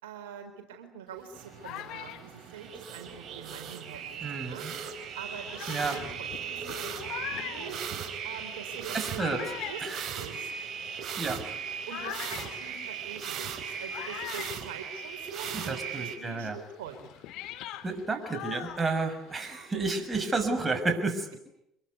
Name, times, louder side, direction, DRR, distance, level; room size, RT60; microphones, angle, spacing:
voice 1, 0.0-4.7 5.1-7.1 7.4-7.8 8.2-9.8 10.2-10.5 11.9-17.1 19.7-20.2, right 7 dB, 80° right, 5 dB, 4.0 m, -44 dB
sound 1, 1.2-4.2 4.9-5.0 5.5-15.5 15.8-19.5, left 13 dB, 65° left, 2.3 m, -43 dB
sound 2, 1.3-16.2, right 7 dB, 50° right, 4.5 m, -38 dB
voice 2, 4.2-4.7 5.7-6.0 8.9-9.4 9.8-10.1 11.2-11.4 15.5-16.6 17.8-21.4, right 3 dB, 25° right, 7 dB, 6.6 m, -31 dB
26.5 x 22.0 x 9.7 m, 0.80 s
hypercardioid pair, 65°, 0 cm